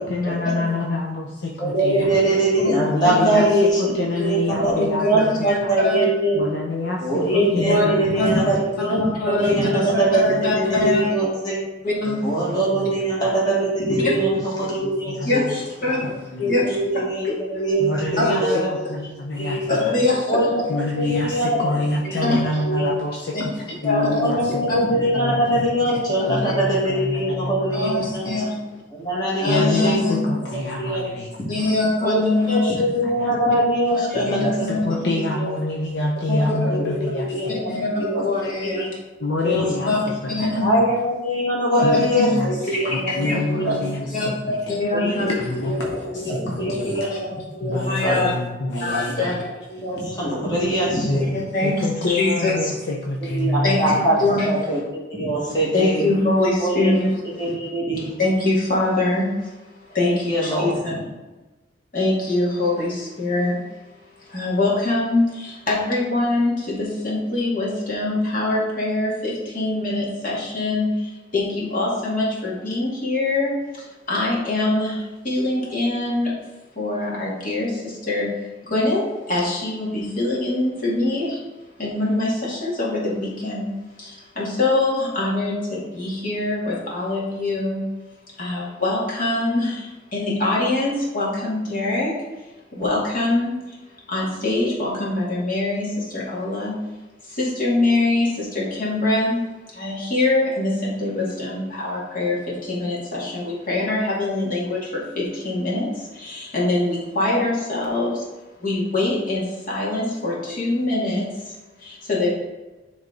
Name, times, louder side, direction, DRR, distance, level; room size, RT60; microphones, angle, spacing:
voice 1, 0.0-2.1 2.8-5.7 6.3-8.3 9.4-9.6 10.3-10.5 12.1-13.4 13.9-14.3 14.6-15.5 16.0-16.6 17.8-18.4 18.7-19.9 20.7-25.4 26.3-28.0 28.2-28.5 29.5-31.4 31.7-31.8 33.0-33.3 34.1-37.6 39.2-39.9 40.4-40.7 41.8-44.8 45.2-47.1 47.6-49.3 49.8-49.9 51.1-54.3, left 2 dB, 65° left, -2 dB, 0.7 m, -27 dB
voice 2, 1.6-3.9 4.2-6.4 7.0-11.6 12.2-15.4 16.4-18.8 19.4-19.7 20.3-20.6 21.0-21.7 22.0-22.9 24.2-28.3 28.9-30.0 30.5-31.0 32.0-34.7 35.3-35.5 36.6-38.2 38.6-38.9 39.4-39.6 40.6-43.7 44.9-45.3 45.7-45.8 46.1-47.3 47.5-48.2 49.2-49.3 49.7-51.2 53.3-54.2 54.4-54.8 55.1-56.0 56.6-56.9 57.4-58.1 60.0-60.8, right 1 dB, 25° left, -6 dB, 1.9 m, -22 dB
voice 3, 4.8-6.0 7.7-7.9 8.2-8.4 8.8-11.1 11.8-12.4 14.0-14.2 15.2-16.1 16.4-16.8 17.2-17.3 18.2-18.6 19.7-20.7 22.2-22.4 23.3-23.4 23.8-24.3 24.7-24.8 26.2-26.5 27.7-28.6 29.4-30.2 31.5-33.0 33.9-35.1 36.3-36.6 37.5-38.9 39.9-40.0 40.3-40.7 42.2-42.3 42.7-42.9 43.2-43.4 44.1-45.3 46.7-47.2 47.9-48.3 48.8-49.3 51.3-51.7 52.1-52.8 53.6-54.7 55.7-57.2 58.2-60.9 61.9-63.6 64.2-73.5 74.1-76.3 76.8-78.3 78.6-81.4 81.8-83.7 84.0-87.8 88.4-92.1 92.7-93.8 94.1-96.8 97.2-99.4 99.7-108.3 108.6-112.3, left 2 dB, 50° left, -6 dB, 2.1 m, -23 dB
9.5 x 3.5 x 4.0 m, 1.1 s
head